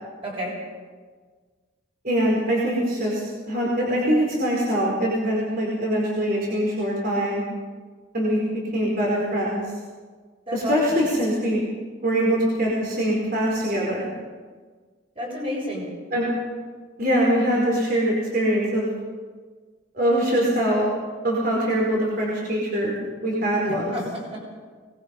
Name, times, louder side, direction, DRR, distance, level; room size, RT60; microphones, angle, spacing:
voice 1, 0.2-0.6 10.5-10.8 15.2-15.9 23.6-24.4, equal, 30° right, -3 dB, 7.4 m, -31 dB
voice 2, 2.0-7.4 8.1-8.4 8.7-9.6 10.5-11.7 12.0-14.0 16.1-16.3 17.0-18.9 19.9-20.9 21.2-23.0 23.2-24.0, equal, 45° right, -4 dB, 4.8 m, -23 dB
24.0 x 20.0 x 5.4 m, 1.5 s
head